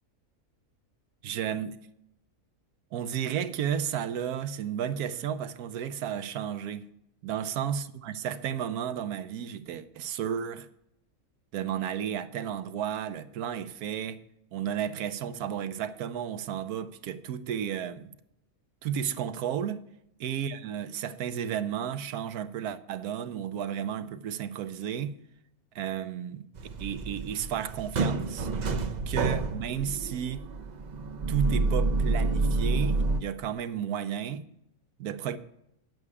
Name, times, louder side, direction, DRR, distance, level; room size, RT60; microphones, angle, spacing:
voice 1, 1.2-1.8 2.9-6.8 7.2-10.7 11.5-14.2 14.5-18.1 18.8-19.8 20.2-25.1 25.7-26.5 26.8-28.5 29.1-30.5 31.3-34.4 35.0-35.4, right 9 dB, 85° right, 1.2 m, -33 dB
sound 1, 26.6-33.2, right 3 dB, 50° right, 0.5 m, -29 dB
9.7 x 7.9 x 4.8 m
omnidirectional pair, 1.6 m